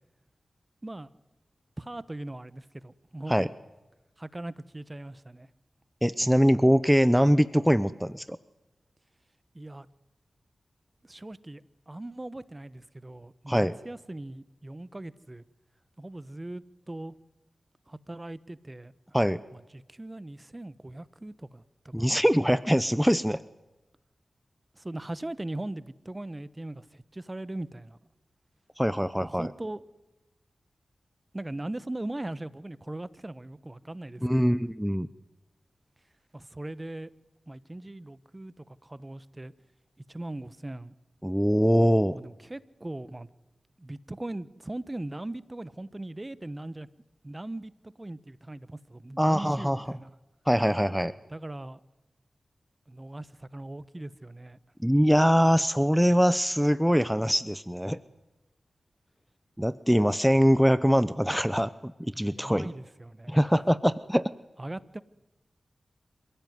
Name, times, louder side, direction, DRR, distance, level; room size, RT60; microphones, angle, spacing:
voice 1, 1.8-3.5 4.2-5.5 9.5-9.9 11.0-11.6 11.9-15.4 16.0-17.1 17.9-18.9 19.5-22.2 24.7-28.0 29.2-29.8 31.3-34.6 36.3-37.1 37.5-39.5 40.1-40.9 42.1-43.3 43.8-46.9 47.2-50.1 51.3-51.8 52.9-54.6 62.1-63.3 64.6-65.0, right 1 dB, 25° right, 18 dB, 1.2 m, -40 dB
voice 2, 6.0-8.4 13.5-13.7 19.1-19.4 21.9-23.4 28.8-29.5 34.2-35.1 41.2-42.2 49.2-49.8 50.5-51.1 54.8-58.0 59.6-61.9 62.2-62.7 63.3-64.3, equal, ahead, 15 dB, 0.8 m, -23 dB
27.5 x 16.0 x 9.5 m, 1.0 s
cardioid pair, 45°, 0 cm